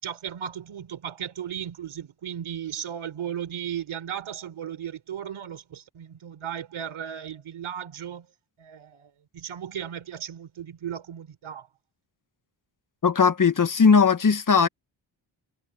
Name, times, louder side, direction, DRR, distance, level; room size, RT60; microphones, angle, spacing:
voice 1, 0.0-8.3 8.6-11.7, right 9 dB, 80° right, 3.9 m, -36 dB
voice 2, 13.0-14.7, left 5 dB, 40° left, 1.6 m, -18 dB
cardioid pair, 65°, 48 cm